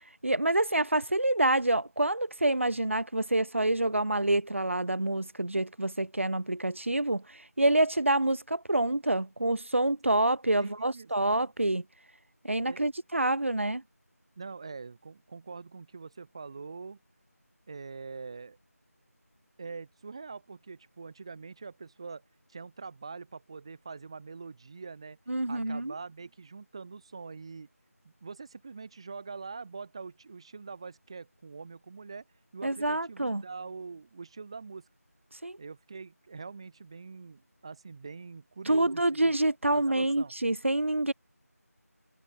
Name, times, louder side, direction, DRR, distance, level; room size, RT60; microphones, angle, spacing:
voice 1, 0.2-11.8 12.4-13.8 25.3-25.9 32.6-33.4 35.4-35.6 38.7-41.1, right 1 dB, 50° right, 2.6 m, -27 dB
voice 2, 10.6-11.4 12.7-12.9 14.4-17.0 17.7-18.6 19.6-22.2 22.5-25.2 25.5-27.7 28.0-32.2 32.5-34.9 35.6-39.3 39.7-40.3, right 4 dB, 20° right, 5.5 m, -44 dB
figure-of-eight pair, 170°, 9 cm